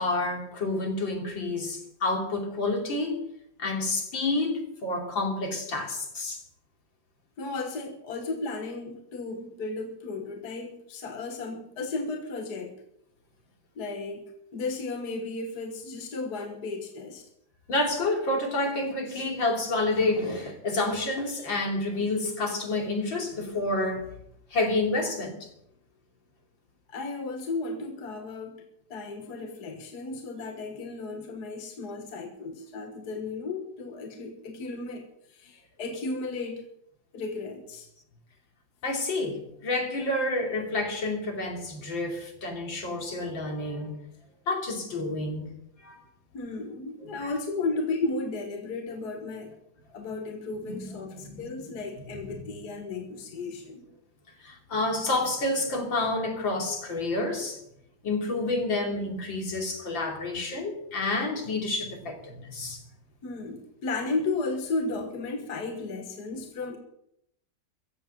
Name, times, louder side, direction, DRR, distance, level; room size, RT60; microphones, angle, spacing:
voice 1, 0.0-3.2 3.6-6.4 17.7-24.1 24.5-25.5 38.8-44.0 44.5-45.5 45.8-46.0 47.0-47.3 50.7-51.5 52.3-52.4 54.4-57.6 58.0-62.8, left 2 dB, 80° left, 3.7 m, -29 dB
voice 2, 7.4-12.7 13.8-17.2 26.9-28.6 28.9-36.7 37.1-37.9 46.3-49.5 49.9-53.9 63.2-66.8, left 3 dB, 60° left, 1.9 m, -34 dB
15.0 x 8.0 x 8.9 m
omnidirectional pair, 2.0 m